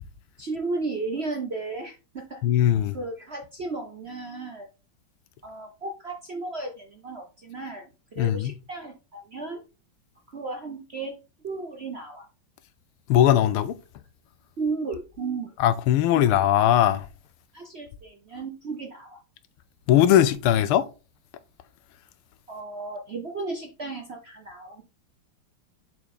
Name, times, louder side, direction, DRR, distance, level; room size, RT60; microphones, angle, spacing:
voice 1, 0.4-2.4 2.9-4.7 5.4-9.6 10.3-11.1 11.4-12.3 14.6-15.5 17.5-19.2 22.5-24.8, right 3 dB, 50° right, 0.7 m, -34 dB
voice 2, 2.4-3.0 8.2-8.5 13.1-13.8 15.6-17.1 19.9-20.9, left 11 dB, 90° left, 1.6 m, -20 dB
7.1 x 4.8 x 3.8 m
omnidirectional pair, 2.3 m